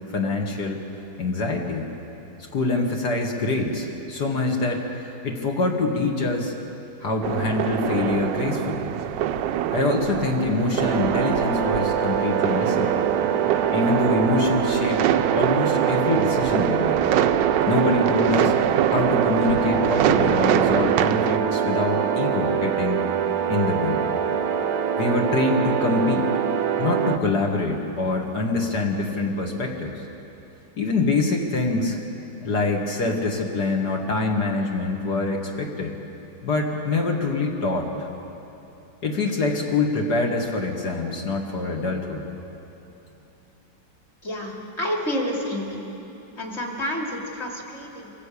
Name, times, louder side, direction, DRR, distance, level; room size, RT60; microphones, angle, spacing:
voice 1, 0.1-0.8 1.2-1.9 2.5-4.8 5.2-6.5 7.0-8.9 9.7-12.9 13.7-15.1 15.3-17.0 17.7-23.0 23.5-24.1 25.0-26.3 26.8-29.9 30.8-32.0 32.4-35.9 36.4-37.9 39.0-42.2, left 3 dB, 60° left, 0 dB, 2.3 m, -25 dB
sound 1, 7.2-21.4, right 10 dB, 80° right, 1.3 m, -25 dB
sound 2, 10.8-27.2, right 8 dB, 60° right, 1.1 m, -24 dB
voice 2, 44.2-45.8 46.4-48.1, equal, 35° left, 0 dB, 2.8 m, -29 dB
24.0 x 15.0 x 8.4 m, 3.0 s
omnidirectional pair, 1.9 m